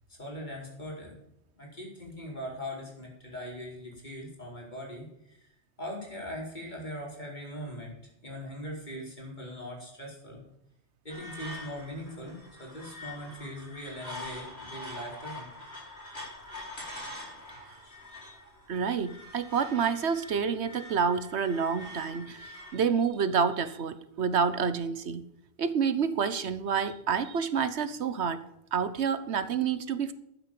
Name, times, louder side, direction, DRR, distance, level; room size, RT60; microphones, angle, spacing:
voice 1, 0.1-1.1 1.5-5.5 5.8-7.9 8.2-10.4 11.0-15.5, equal, 45° left, -2 dB, 4.8 m, -40 dB
sound 1, 11.1-22.8, left 1 dB, 70° left, 4.9 m, -45 dB
voice 2, 18.7-25.2 25.6-28.4 28.7-30.1, right 6 dB, 85° right, 13 dB, 1.3 m, -28 dB
12.5 x 9.3 x 7.5 m, 0.82 s
omnidirectional pair, 1.1 m